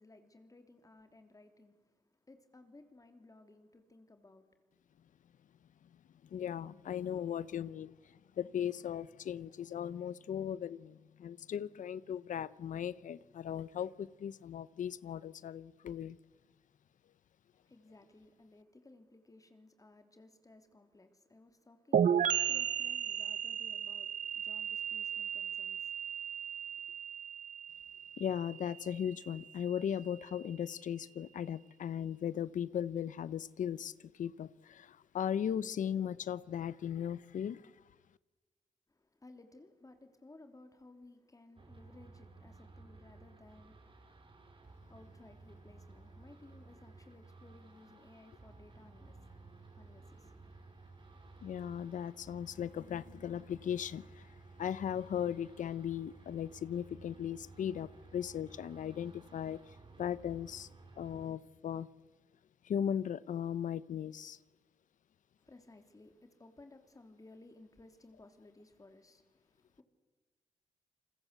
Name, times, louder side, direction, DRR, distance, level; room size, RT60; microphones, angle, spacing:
voice 1, 0.0-1.8 2.3-4.5 17.5-27.0 38.9-50.4 65.4-69.8, left 2 dB, 25° left, 3.1 m, -59 dB
voice 2, 6.3-7.9 8.4-16.2 28.2-33.9 34.2-37.6 51.4-54.2 54.6-59.6 60.0-60.7 61.0-61.9 62.6-64.4, left 9 dB, 70° left, 0.8 m, -37 dB
sound 1, 21.9-29.5, right 9 dB, 70° right, 0.9 m, -35 dB
sound 2, 41.6-61.3, right 3 dB, 40° right, 4.7 m, -56 dB
29.0 x 21.0 x 8.2 m
cardioid pair, 75°, 14 cm